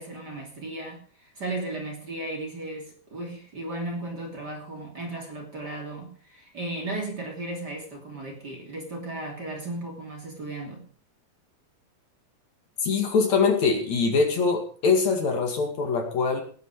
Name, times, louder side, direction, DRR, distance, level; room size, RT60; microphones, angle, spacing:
voice 1, 0.0-10.8, right 2 dB, 30° right, 3.2 m, -35 dB
voice 2, 12.8-16.4, left 4 dB, 55° left, 3.5 m, -23 dB
18.5 x 9.3 x 4.9 m
omnidirectional pair, 3.8 m